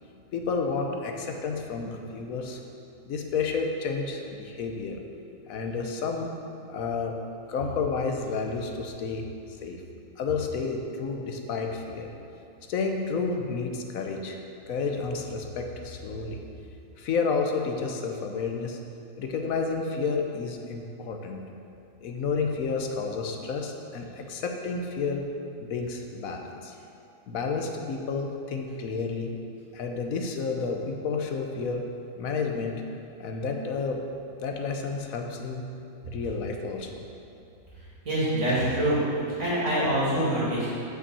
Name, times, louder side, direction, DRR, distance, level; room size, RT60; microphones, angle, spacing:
voice 1, 0.3-2.6 3.1-5.0 5.5-6.3 6.7-7.2 7.5-9.2 9.6-9.8 10.2-12.1 12.7-14.4 14.7-16.4 17.0-18.8 19.2-21.4 22.0-25.2 25.6-26.8 27.3-29.3 29.7-31.8 32.2-32.7 33.2-34.0 34.4-35.7 36.1-37.0, left 4 dB, 75° left, 3 dB, 1.2 m, -30 dB
voice 2, 38.0-39.0 39.4-40.7, right 1 dB, 60° right, -8 dB, 2.7 m, -25 dB
6.3 x 5.5 x 6.8 m, 2.5 s
omnidirectional pair, 1.5 m